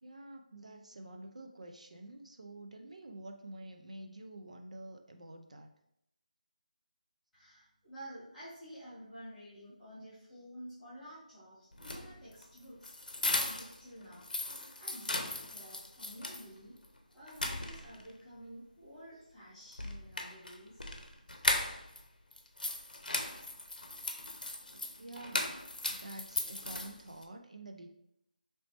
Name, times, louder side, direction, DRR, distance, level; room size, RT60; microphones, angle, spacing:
voice 1, 0.0-5.7 24.7-25.6 25.8-27.9, right 1 dB, 50° right, 4 dB, 0.3 m, -48 dB
voice 2, 7.3-12.9 13.3-14.3 14.7-16.8 17.1-20.8 21.3-21.4, equal, ahead, -18 dB, 0.6 m, -51 dB
sound 1, 11.7-13.8 14.1-16.5 16.8-16.9 17.3-18.1 19.7-22.0 22.3-27.2, left 2 dB, 75° left, 0.6 m, -37 dB
4.1 x 3.1 x 2.9 m, 0.78 s
figure-of-eight pair, 180°, 5 cm